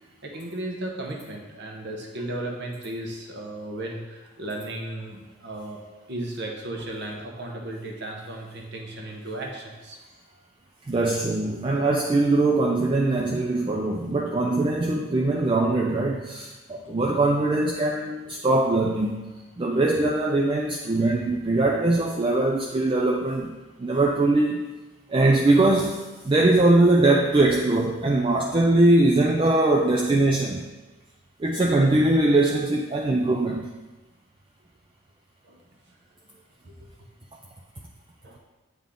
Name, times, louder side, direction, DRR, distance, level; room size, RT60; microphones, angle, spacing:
voice 1, 0.2-5.8 6.1-10.0 16.7-16.9 35.4-35.6 36.6-36.9 38.2-38.4, right 1 dB, 50° right, 0 dB, 0.9 m, -35 dB
voice 2, 10.9-19.2 19.6-23.5 23.8-24.7 25.1-30.6 31.4-33.7, right 2 dB, 20° right, 0 dB, 0.3 m, -21 dB
8.4 x 3.6 x 3.7 m, 1.2 s
head